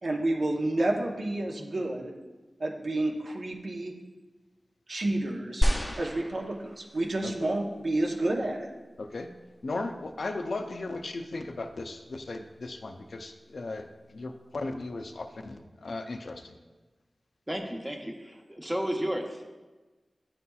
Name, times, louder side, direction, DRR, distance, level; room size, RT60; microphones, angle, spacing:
voice 1, 0.0-2.1 2.6-3.9 4.9-5.7 6.0-8.7, right 2 dB, 70° right, 1 dB, 0.8 m, -30 dB
sound 1, 5.6-7.1 7.9-8.0, equal, 15° left, 0.5 m, -29 dB
voice 2, 9.0-9.3 9.6-16.6, left 2 dB, 80° left, 6 dB, 0.4 m, -36 dB
voice 3, 17.5-19.4, equal, 20° right, 1 dB, 0.8 m, -33 dB
10.0 x 4.1 x 2.3 m, 1.2 s
wide cardioid pair, 55°, 0 cm